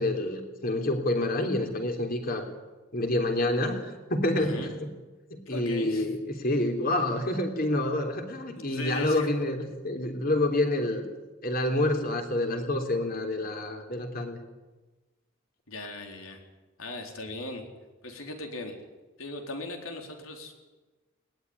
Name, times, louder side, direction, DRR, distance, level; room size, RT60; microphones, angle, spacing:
voice 1, 0.0-2.4 2.9-4.9 5.3-11.0 11.4-14.4, left 1 dB, 45° left, 4 dB, 3.5 m, -28 dB
voice 2, 4.4-4.7 5.5-6.1 8.6-9.3 15.7-16.4 16.8-17.6 18.0-18.7 19.2-20.5, left 2 dB, 85° left, 4 dB, 4.1 m, -38 dB
21.0 x 19.0 x 9.8 m, 1.2 s
head